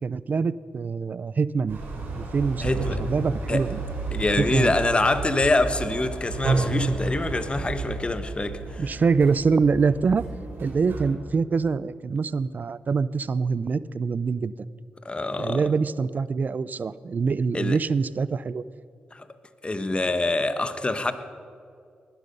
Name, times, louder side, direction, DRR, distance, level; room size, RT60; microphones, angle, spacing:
voice 1, 0.0-1.8 2.2-2.7 3.0-3.8 4.4-4.7 8.8-10.2 10.6-14.5 15.4-18.6, right 5 dB, 50° right, 0.5 m, -24 dB
sound 1, 1.7-11.1, right 3 dB, 80° right, 3.9 m, -31 dB
voice 2, 2.6-3.0 3.5-3.6 4.1-8.8 15.0-15.6 17.5-17.8 19.1-19.3 19.6-21.1, left 2 dB, 30° left, 1.2 m, -25 dB
20.0 x 12.0 x 5.5 m
cardioid pair, 55°, 4 cm